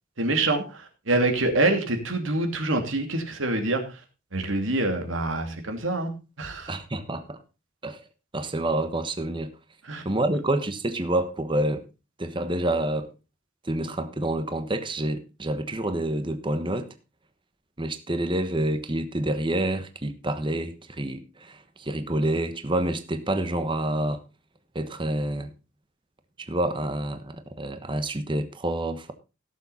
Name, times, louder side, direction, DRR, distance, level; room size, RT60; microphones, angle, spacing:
voice 1, 0.2-3.8 4.3-6.1 6.4-6.8 9.8-10.0, right 2 dB, 75° right, 2.8 m, -26 dB
voice 2, 6.7-7.4 7.8-8.0 8.3-9.5 10.0-11.9 12.2-13.1 13.6-16.9 17.8-24.2 24.7-25.5 26.4-29.1, right 1 dB, 25° right, 1.1 m, -28 dB
17.0 x 7.2 x 4.2 m
head